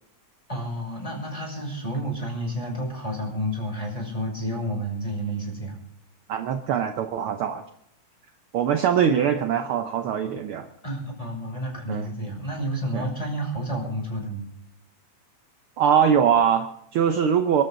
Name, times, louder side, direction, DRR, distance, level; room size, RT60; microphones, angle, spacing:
voice 1, 0.5-5.8 10.8-14.5, equal, 10° left, 0 dB, 5.9 m, -30 dB
voice 2, 6.3-7.6 8.5-10.7 11.9-12.1 12.9-13.1 15.8-17.6, right 8 dB, 70° right, 7 dB, 1.3 m, -22 dB
25.0 x 13.0 x 3.9 m, 0.73 s
omnidirectional pair, 3.5 m